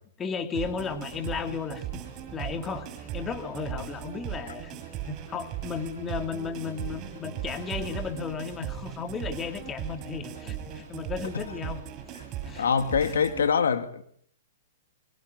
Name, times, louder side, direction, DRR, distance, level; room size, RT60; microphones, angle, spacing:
voice 1, 0.2-2.0 2.3-11.8 12.4-12.6 13.0-13.2, left 5 dB, 20° left, 2.6 m, -34 dB
sound 1, 0.5-13.5, right 10 dB, 30° right, 7.5 m, -38 dB
voice 2, 12.6-14.0, left 6 dB, 85° left, 2.1 m, -24 dB
23.5 x 22.5 x 9.6 m
hypercardioid pair, 140°, 0 cm